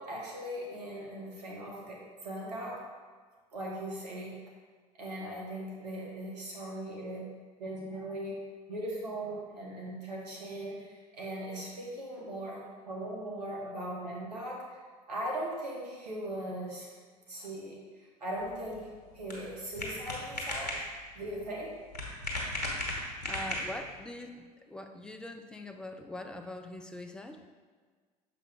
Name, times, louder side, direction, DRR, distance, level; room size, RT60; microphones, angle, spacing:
voice 1, 0.0-2.8 3.5-4.4 5.0-7.2 7.6-8.4 8.7-14.8 15.1-16.9 17.3-18.9 19.1-20.8 21.1-21.7, right 1 dB, 75° right, -3 dB, 1.5 m, -39 dB
sound 1, 18.4-24.0, left 1 dB, 75° left, 1.3 m, -37 dB
voice 2, 23.2-27.4, left 1 dB, 5° left, 5 dB, 0.5 m, -43 dB
6.8 x 4.8 x 3.5 m, 1.5 s
figure-of-eight pair, 65°, 21 cm